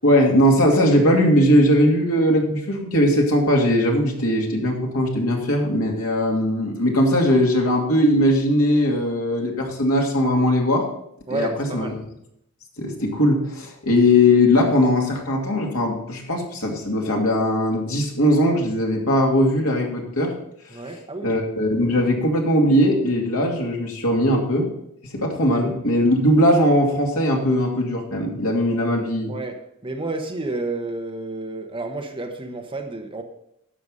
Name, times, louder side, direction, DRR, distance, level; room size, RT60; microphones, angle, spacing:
voice 1, 0.0-10.8 11.3-11.9 12.8-20.3 21.2-24.7 25.1-29.3, left 1 dB, 75° left, 0 dB, 2.5 m, -19 dB
voice 2, 11.3-11.9 20.7-21.4 25.5-25.6 29.3-33.2, right 2 dB, 20° right, 3 dB, 1.1 m, -30 dB
11.5 x 7.0 x 5.5 m, 0.76 s
head